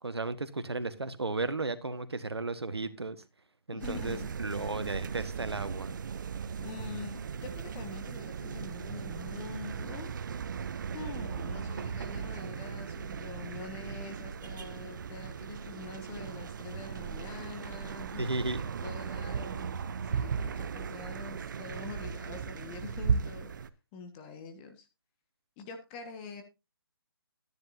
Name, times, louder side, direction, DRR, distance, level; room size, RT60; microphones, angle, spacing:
voice 1, 0.0-3.2 3.7-5.9 18.2-18.7, right 3 dB, 85° right, 12 dB, 1.4 m, -34 dB
voice 2, 3.7-4.3 6.6-10.1 10.9-18.2 18.6-19.7 20.0-23.5 23.9-24.9 25.6-26.4, left 5 dB, 25° left, 6 dB, 1.5 m, -45 dB
sound 1, 3.8-23.7, right 6 dB, 50° right, 0.7 m, -37 dB
12.5 x 10.5 x 2.7 m, 0.26 s
figure-of-eight pair, 145°, 13 cm